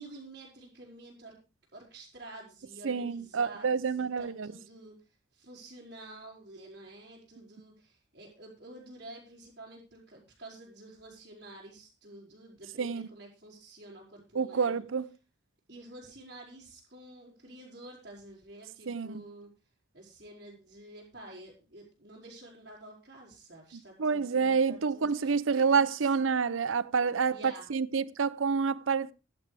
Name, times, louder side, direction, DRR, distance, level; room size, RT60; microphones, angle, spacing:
voice 1, 0.0-1.4 1.7-4.9 5.3-14.8 15.7-19.5 19.9-26.4 27.3-27.7, right 2 dB, 55° right, 4.9 m, -50 dB
voice 2, 2.8-4.5 12.8-13.1 14.3-15.1 18.9-19.2 24.0-29.1, right 5 dB, 85° right, 0.6 m, -28 dB
15.0 x 11.0 x 3.4 m
head